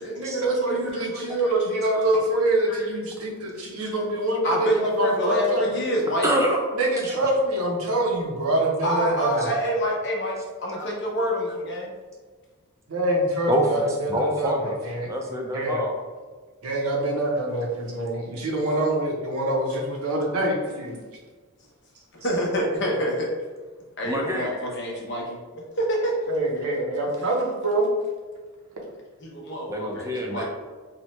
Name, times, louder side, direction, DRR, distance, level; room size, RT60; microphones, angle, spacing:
voice 1, 0.1-4.7 5.0-5.7 6.8-9.5 12.9-15.1 15.5-15.8 16.6-21.0 26.3-27.9, right 1 dB, 90° right, -1 dB, 0.6 m, -25 dB
voice 2, 0.7-1.4 2.7-2.9 4.4-6.3 8.8-11.9 22.1-23.3 24.0-26.1 29.2-30.4, equal, 55° left, -2 dB, 0.7 m, -27 dB
voice 3, 6.2-6.6 7.0-7.1 10.7-10.9 13.5-13.7 14.1-14.8 15.0-16.0 24.0-24.5 29.7-30.4, right 1 dB, 15° right, 0 dB, 0.3 m, -26 dB
2.8 x 2.1 x 3.0 m, 1.4 s
head